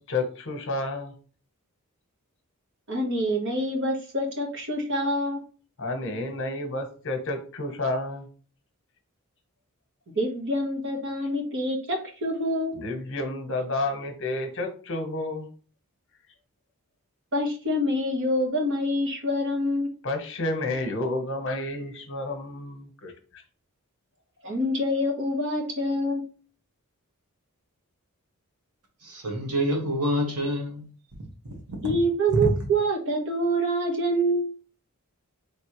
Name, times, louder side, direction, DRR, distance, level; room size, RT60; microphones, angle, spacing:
voice 1, 0.1-1.1 5.8-8.3 12.8-15.5 20.0-23.1, left 2 dB, 55° left, 1.0 m, -30 dB
voice 2, 2.9-5.4 10.2-12.8 17.3-19.9 24.4-26.2 31.8-34.5, equal, 55° right, 1.2 m, -26 dB
voice 3, 29.0-30.9, equal, 85° right, 1.4 m, -27 dB
4.2 x 3.2 x 3.0 m
head